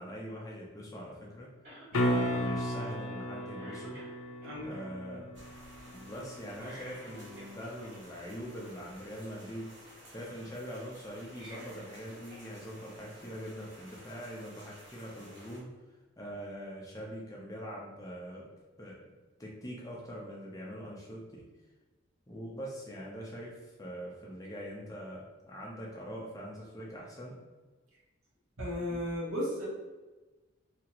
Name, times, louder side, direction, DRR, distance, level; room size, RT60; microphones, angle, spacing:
voice 1, 0.0-1.5 2.0-4.0 4.6-5.3 5.9-9.7 10.1-15.7 16.2-18.5 18.8-19.1 19.4-21.5 22.3-27.4, equal, 15° left, -3 dB, 0.5 m, -43 dB
Cough, 1.6-2.1 2.5-2.6 3.1-3.3 3.5-4.5 6.5-7.9 11.2-12.5 12.8-12.9 14.0-14.1, right 1 dB, 40° right, 1.4 m, -51 dB
sound 1, 1.9-8.0 12.6-12.7, equal, 90° left, 0.4 m, -35 dB
sound 2, 5.3-15.6, equal, 60° right, 0.9 m, -54 dB
voice 2, 28.6-29.7, equal, 85° right, -5 dB, 1.0 m, -34 dB
2.8 x 2.4 x 2.9 m, 1.2 s
head